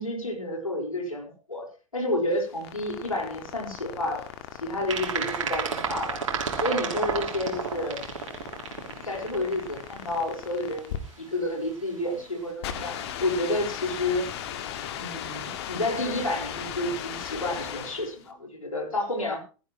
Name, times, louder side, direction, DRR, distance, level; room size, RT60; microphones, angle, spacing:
voice 1, 0.0-1.7 1.9-4.2 4.6-6.2 6.6-8.0 8.7-14.3 14.9-19.4, left 1 dB, 80° left, 1 dB, 4.8 m, -30 dB
sound 1, 2.3-18.2, left 10 dB, 50° left, 1.9 m, -38 dB
sound 2, 4.9-10.3, right 6 dB, 65° right, 3.0 m, -32 dB
16.0 x 15.0 x 3.1 m, 0.36 s
figure-of-eight pair, 95°, 17 cm